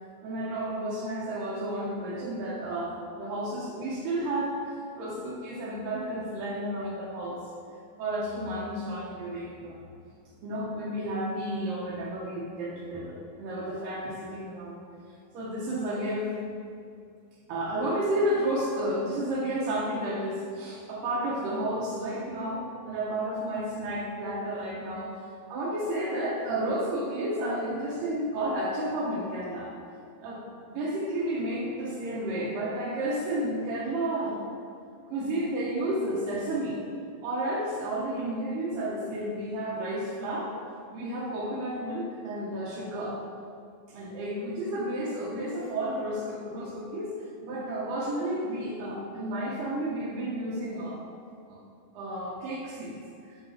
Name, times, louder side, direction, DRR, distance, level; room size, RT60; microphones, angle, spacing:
voice 1, 0.2-7.4 8.0-9.8 10.4-14.8 15.3-16.3 17.5-25.1 25.5-29.7 30.2-34.4 35.1-36.8 37.2-40.5 40.9-43.2 43.9-47.2 47.4-51.0 51.5-51.6 51.9-53.0, right 1 dB, 75° right, -6 dB, 2.5 m, -31 dB
9.9 x 4.3 x 4.9 m, 2.4 s
omnidirectional pair, 4.1 m